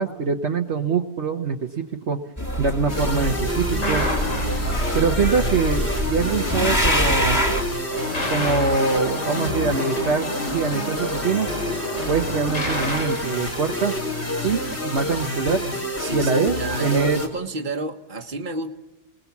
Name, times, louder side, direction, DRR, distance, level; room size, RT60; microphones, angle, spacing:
voice 1, 0.0-2.2 2.6-4.1 4.9-7.4 8.3-10.3 10.5-11.5 12.1-13.9 14.4-15.6 16.1-16.5 16.8-17.2, right 5 dB, 60° right, 3 dB, 1.3 m, -23 dB
sound 1, 2.4-7.6, equal, 15° left, 2.4 m, -24 dB
sound 2, 2.9-17.3, left 1 dB, 55° left, 4.4 m, -28 dB
sound 3, 3.8-5.2 7.9-14.5, left 1 dB, 90° left, 4.0 m, -31 dB
voice 2, 9.3-9.9 16.0-18.7, right 2 dB, 40° right, 5 dB, 1.5 m, -30 dB
29.5 x 20.0 x 7.2 m, 1.0 s
omnidirectional pair, 1.3 m